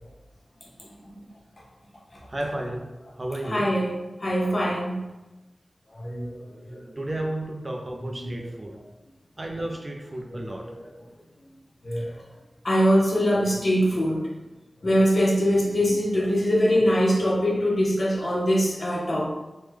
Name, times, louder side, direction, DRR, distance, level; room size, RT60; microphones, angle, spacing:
voice 1, 2.3-2.9 3.2-3.7 7.0-8.8 9.4-10.7, right 1 dB, 40° right, 1 dB, 0.5 m, -32 dB
voice 2, 3.4-5.1 5.9-7.0 8.0-8.5 10.3-11.1 11.8-12.3 12.6-14.3 14.8-19.3, equal, 50° left, -3 dB, 0.7 m, -23 dB
3.2 x 2.1 x 3.4 m, 1.0 s
cardioid pair, 50°, 0 cm